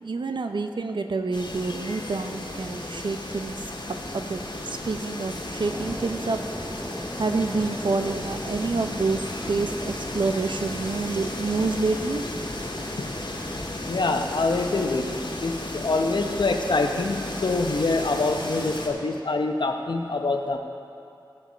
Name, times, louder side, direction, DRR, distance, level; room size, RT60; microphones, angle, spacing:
voice 1, 0.0-3.6 3.9-6.4 7.2-12.2, right 3 dB, 70° right, 7 dB, 0.6 m, -28 dB
sound 1, 1.3-18.9, left 1 dB, 85° left, 1.7 m, -34 dB
sound 2, 5.7-14.3, equal, 5° right, 0.5 m, -39 dB
voice 2, 13.9-20.6, left 3 dB, 65° left, 4 dB, 0.8 m, -25 dB
16.0 x 5.5 x 5.1 m, 2.6 s
wide cardioid pair, 65°, 8 cm